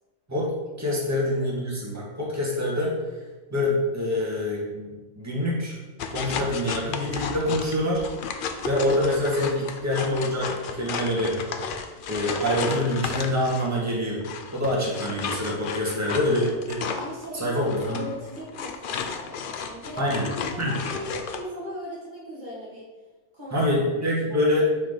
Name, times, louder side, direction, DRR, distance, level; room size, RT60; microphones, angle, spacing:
voice 1, 0.8-2.9 3.5-5.8 6.1-8.1 8.6-11.4 12.1-14.2 14.5-16.8 17.3-18.0 20.0-20.3 20.6-20.7 23.5-24.7, left 1 dB, 10° right, -5 dB, 1.6 m, -25 dB
sound 1, 6.0-13.7 14.2-21.4, left 6 dB, 65° left, 0.5 m, -33 dB
voice 2, 16.1-16.5 16.9-20.1 20.5-22.9 23.3-23.6 24.3-24.5, equal, 35° right, -7 dB, 1.6 m, -38 dB
6.4 x 4.1 x 5.0 m, 1.2 s
omnidirectional pair, 1.5 m